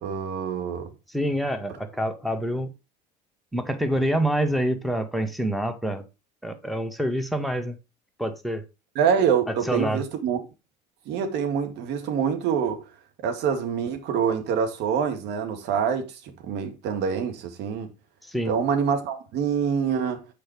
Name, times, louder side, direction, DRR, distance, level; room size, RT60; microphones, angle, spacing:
voice 1, 0.0-0.9 9.0-10.4 11.1-12.8 13.2-16.1 16.4-17.9 18.5-20.2, right 7 dB, 55° right, 2.1 m, -25 dB
voice 2, 1.1-2.7 3.5-6.0 6.4-7.8 8.2-8.6 9.7-10.0 18.3-18.5, right 1 dB, ahead, 1.7 m, -26 dB
8.8 x 4.9 x 4.7 m
figure-of-eight pair, 65°, 21 cm